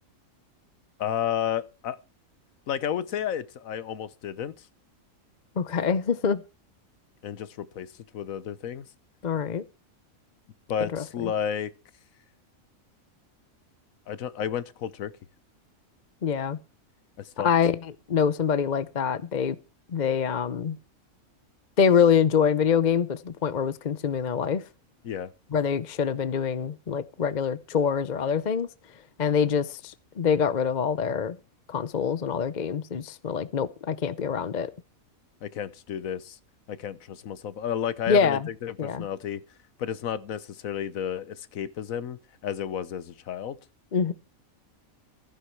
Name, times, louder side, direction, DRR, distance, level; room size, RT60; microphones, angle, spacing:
voice 1, 1.0-2.0 2.7-4.7 7.2-8.9 10.7-11.7 14.1-15.1 17.2-17.5 25.0-25.3 35.4-36.4 36.7-39.4 39.8-43.6, left 9 dB, 80° left, 1.3 m, -32 dB
voice 2, 5.6-6.4 9.2-9.6 10.9-11.3 16.2-16.6 17.4-17.8 18.1-19.6 19.9-20.8 21.8-24.6 25.5-28.7 29.2-31.4 31.7-34.7 38.1-38.5 38.8-39.1 43.9-44.1, left 7 dB, 40° left, 0.7 m, -25 dB
15.0 x 10.0 x 4.5 m
omnidirectional pair, 1.4 m